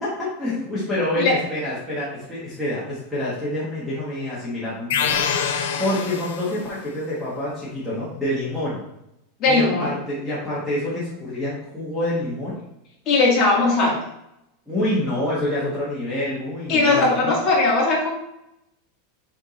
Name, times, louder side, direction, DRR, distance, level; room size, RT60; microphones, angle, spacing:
voice 1, 0.0-5.5 5.8-8.8 9.4-12.6 14.7-17.2, left 1 dB, ahead, -12 dB, 1.3 m, -27 dB
sound 1, 4.9-6.8, left 7 dB, 85° left, 0.9 m, -25 dB
voice 2, 9.4-9.9 13.1-14.0 16.7-18.1, left 3 dB, 25° left, -5 dB, 2.0 m, -18 dB
6.6 x 3.6 x 4.1 m, 0.82 s
supercardioid pair, 180°, 0 cm